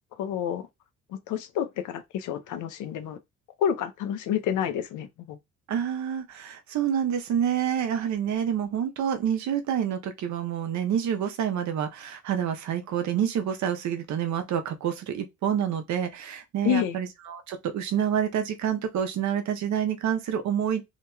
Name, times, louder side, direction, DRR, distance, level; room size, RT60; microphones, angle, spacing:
voice 1, 0.1-0.7 1.1-3.2 3.6-5.4 16.6-17.0, left 9 dB, 80° left, 0.6 m, -29 dB
voice 2, 5.7-20.9, right 9 dB, 70° right, 0.7 m, -28 dB
2.9 x 2.8 x 2.2 m
cardioid pair, 90°, 30 cm